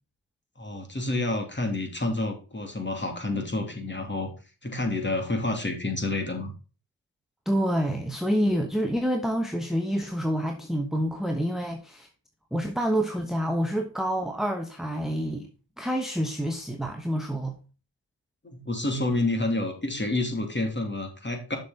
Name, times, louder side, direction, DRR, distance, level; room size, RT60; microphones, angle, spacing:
voice 1, 0.6-4.3 4.6-6.5 18.4-21.6, left 2 dB, 25° left, 2.6 m, -29 dB
voice 2, 7.5-12.1 12.5-15.5 15.8-17.6, equal, ahead, 1.1 m, -27 dB
6.7 x 6.6 x 3.8 m
cardioid pair, 65°, 44 cm